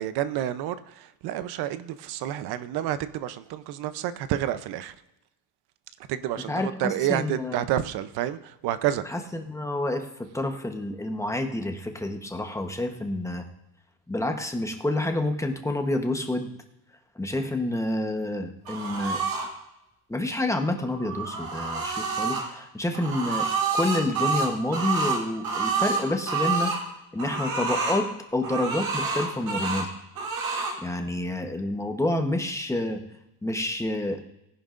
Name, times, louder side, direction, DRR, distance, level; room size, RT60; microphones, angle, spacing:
voice 1, 0.0-4.9 6.1-9.0, right 11 dB, 85° right, 0.7 m, -29 dB
voice 2, 6.5-7.6 9.1-13.4 14.1-16.5 17.1-19.2 20.1-23.5 23.7-26.7 27.1-29.9 30.8-33.0 33.4-34.2, left 1 dB, 10° left, 1.0 m, -28 dB
sound 1, 18.7-19.5 20.9-22.4 22.9-26.8 27.2-28.0 28.4-29.9 30.2-30.8, right 4 dB, 70° right, 3.3 m, -28 dB
18.0 x 11.0 x 2.5 m
cardioid pair, 135°, 37 cm